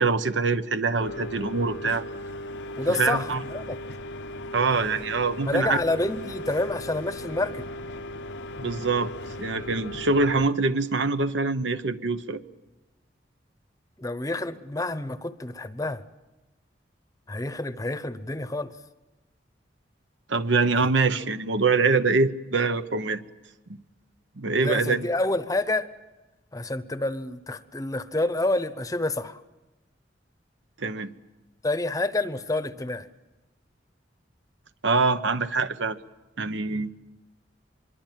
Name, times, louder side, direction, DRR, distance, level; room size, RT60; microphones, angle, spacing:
voice 1, 0.0-2.0 2.9-3.4 4.5-5.8 8.6-9.1 9.4-12.4 20.3-23.2 23.7-23.8 24.4-25.1 30.8-31.1 34.8-36.0 36.4-36.9, right 4 dB, 85° right, 11 dB, 1.0 m, -24 dB
sound 1, 1.0-10.5, left 1 dB, 70° left, 0.7 m, -37 dB
voice 2, 2.8-3.8 5.5-7.7 14.0-16.0 17.3-18.7 20.8-20.9 24.6-25.9 26.5-29.4 31.6-33.1, left 2 dB, 20° left, 13 dB, 0.8 m, -28 dB
25.0 x 22.5 x 7.6 m, 1.1 s
head